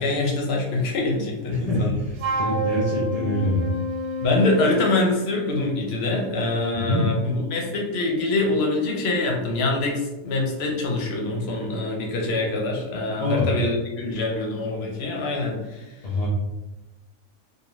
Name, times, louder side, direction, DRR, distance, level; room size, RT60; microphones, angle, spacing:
voice 1, 0.0-2.0 4.2-15.8, left 2 dB, 60° left, 0 dB, 0.8 m, -24 dB
voice 2, 1.5-3.7 6.7-7.1 13.2-13.5 16.0-16.3, left 1 dB, 80° left, -7 dB, 0.3 m, -25 dB
Wind instrument woodwind instrument, 2.2-5.1, equal, 70° right, 0.8 m, -28 dB
2.5 x 2.2 x 3.0 m, 1.0 s
omnidirectional pair, 1.4 m